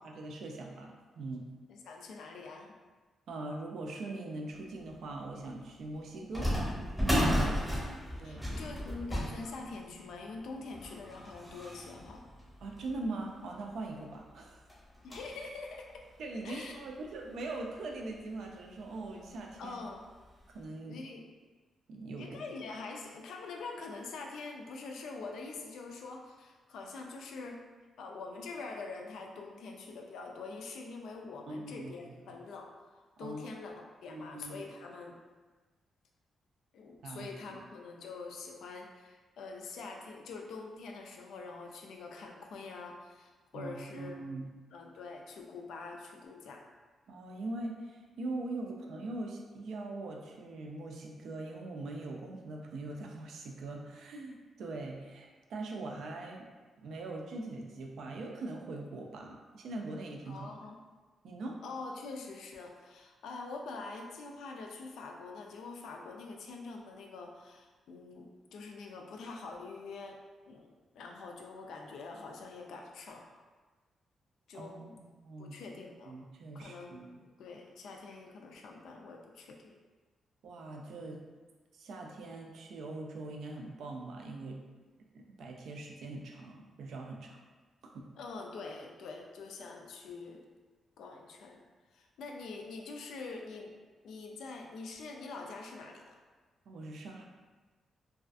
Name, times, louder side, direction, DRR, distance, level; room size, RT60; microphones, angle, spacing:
voice 1, 0.0-1.5 3.3-6.5 7.0-7.3 8.2-8.4 12.6-14.6 16.2-19.8 20.5-21.0 21.9-22.3 31.5-31.9 33.2-33.4 34.1-34.6 37.0-37.6 43.5-44.5 47.1-56.5 56.8-60.6 61.2-61.6 74.5-74.9 75.2-77.2 80.4-81.2 81.7-84.6 85.1-87.4 87.8-88.1 96.7-97.2, right 2 dB, 70° right, 1 dB, 0.3 m, -42 dB
voice 2, 1.7-2.7 7.4-8.0 8.2-12.2 15.0-16.0 16.4-16.8 19.6-20.0 20.9-21.2 22.2-27.6 28.0-32.7 33.2-33.7 34.0-35.2 36.7-44.2 44.7-46.6 60.3-60.8 61.6-70.2 70.5-73.4 74.5-75.0 75.4-76.1 76.5-79.8 88.2-90.4 91.0-91.6 91.9-93.7 94.0-96.2, left 3 dB, 85° left, 2 dB, 0.3 m, -45 dB
sound 1, 4.9-5.0 6.3-13.3 13.8-13.9 14.2-14.3 14.7-15.4 15.9-16.0 16.9-17.0 17.3-17.5 18.8-19.1 19.5-19.6 20.2-20.4, equal, 5° right, 0.8 m, -34 dB
2.4 x 2.3 x 2.4 m, 1.3 s
wide cardioid pair, 150°, 0 cm